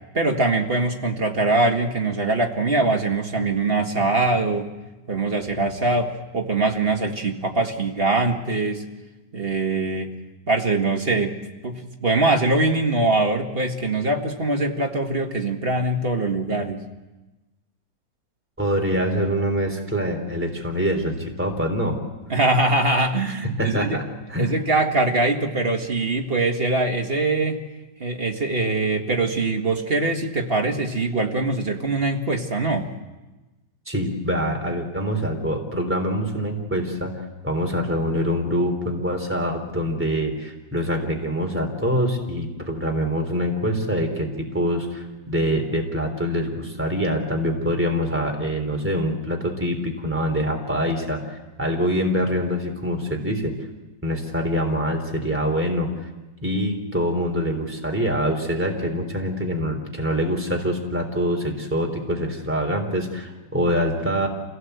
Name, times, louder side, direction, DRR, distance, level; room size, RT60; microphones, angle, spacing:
voice 1, 0.1-4.7 5.1-8.9 9.3-10.1 10.5-11.4 11.6-16.8 22.3-24.0 24.4-27.6 28.0-32.9, right 2 dB, 35° right, 3 dB, 1.8 m, -22 dB
voice 2, 18.6-22.0 23.6-24.0 24.3-24.5 33.9-37.1 37.4-53.5 54.0-55.9 56.4-64.3, equal, 5° right, 3 dB, 3.4 m, -25 dB
27.0 x 17.5 x 8.0 m, 1.1 s
omnidirectional pair, 1.9 m